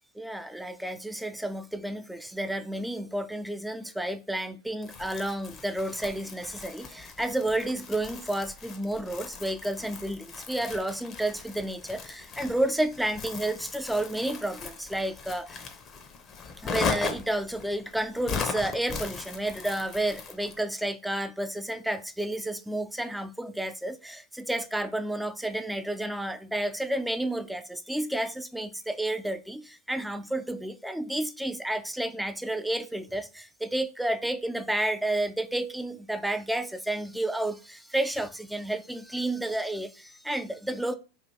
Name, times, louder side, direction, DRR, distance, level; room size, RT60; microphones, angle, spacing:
voice 1, 0.1-15.6 16.6-40.9, right 1 dB, 5° right, 0.4 m, -31 dB
Crumpling crinkling, 4.8-20.6, left 5 dB, 35° left, 0.7 m, -38 dB
3.3 x 2.5 x 4.0 m
hypercardioid pair, 95°, 0 cm